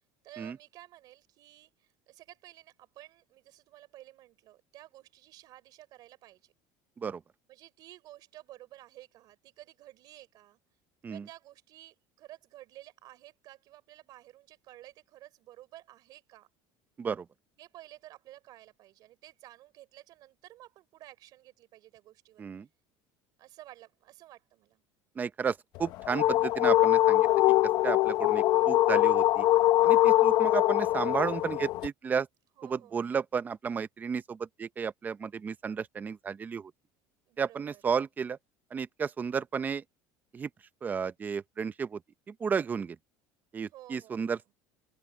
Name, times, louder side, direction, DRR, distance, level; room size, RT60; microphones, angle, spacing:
voice 1, 0.2-6.5 7.5-10.6 11.1-16.5 17.6-22.6 23.4-24.8 32.6-33.1 37.3-37.8 43.7-44.4, right 15 dB, 50° right, 4.4 m, -53 dB
voice 2, 25.2-27.3 27.8-29.5 29.8-32.3 32.6-36.7 37.4-38.4 38.7-39.8 40.3-40.5 40.8-42.0 42.3-43.0 43.5-44.4, right 6 dB, 20° right, 0.7 m, -33 dB
sound 1, 25.8-31.9, left 15 dB, 55° left, 0.7 m, -23 dB
open air
cardioid pair, 155°, 9 cm